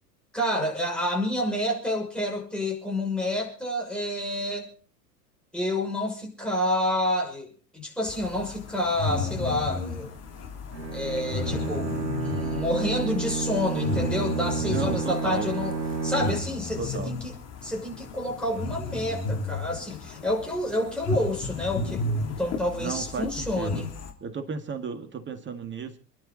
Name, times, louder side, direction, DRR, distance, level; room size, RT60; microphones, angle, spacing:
voice 1, 0.3-4.7 5.5-10.1 10.9-15.7 16.0-17.3 17.6-23.9, left 1 dB, ahead, -1 dB, 6.3 m, -29 dB
sound 1, 8.0-24.1, left 3 dB, 30° left, 3.2 m, -34 dB
Bowed string instrument, 10.7-16.7, right 4 dB, 90° right, 1.1 m, -30 dB
voice 2, 14.6-15.5 16.8-17.1 22.8-23.8 24.2-26.0, right 6 dB, 20° right, 8 dB, 1.9 m, -34 dB
28.0 x 11.0 x 4.1 m, 0.38 s
figure-of-eight pair, 85°, 50 cm